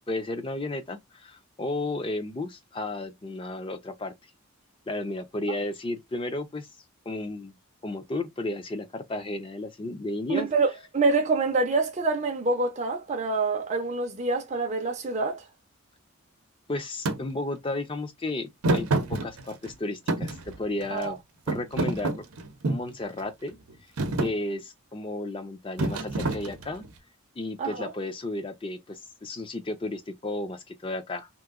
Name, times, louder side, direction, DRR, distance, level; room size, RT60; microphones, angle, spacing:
voice 1, 0.1-4.1 4.9-6.7 7.1-7.6 7.8-10.5 16.7-21.2 21.5-22.2 22.7-23.6 24.2-26.8 27.4-31.3, left 2 dB, 25° left, 0.5 m, -33 dB
voice 2, 10.3-15.4 20.9-21.2 27.6-27.9, right 3 dB, 30° right, 0.5 m, -26 dB
Thump thud, 17.1-17.2 18.6-19.7 20.1-21.1 21.5-22.9 23.5-23.7 24.0-24.4 25.8-26.9, right 2 dB, 85° right, 0.7 m, -27 dB
2.9 x 2.6 x 2.4 m
head